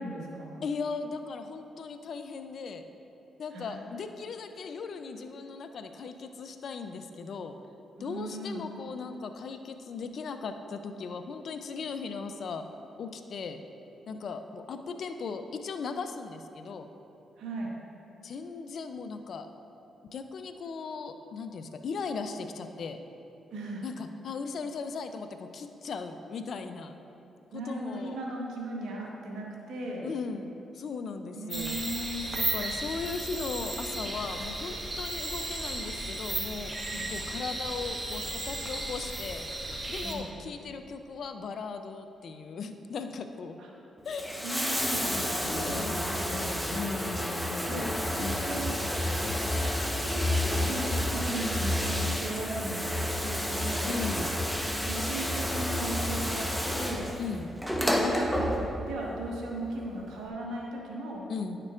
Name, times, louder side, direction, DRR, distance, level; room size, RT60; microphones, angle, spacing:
voice 1, 0.0-0.6 3.5-3.8 8.0-8.7 17.4-17.7 23.5-23.8 27.5-30.1 31.3-32.2 36.9-37.1 40.0-40.3 43.6-43.7 44.4-46.6 47.6-47.9 48.2-48.8 50.0-54.0 54.8-56.5 56.7-57.1 57.9-61.3, right 1 dB, 80° right, -2 dB, 1.2 m, -37 dB
voice 2, 0.6-2.8 3.4-7.6 8.0-12.6 13.0-13.6 14.1-16.9 18.2-19.5 20.1-23.0 23.8-26.9 27.5-28.2 30.0-31.8 32.3-36.7 37.1-39.4 39.9-43.6 44.0-44.4 45.5-47.9 48.2-48.5 53.8-54.3 57.2-57.5 61.3-61.6, left 5 dB, 65° left, 8 dB, 0.5 m, -38 dB
sound 1, 31.5-40.1, right 1 dB, 25° right, 1.1 m, -35 dB
Bathtub (filling or washing), 44.0-59.0 60.1-60.2, left 1 dB, ahead, 1.0 m, -30 dB
10.5 x 6.6 x 2.5 m, 2.9 s
supercardioid pair, 60°, 0 cm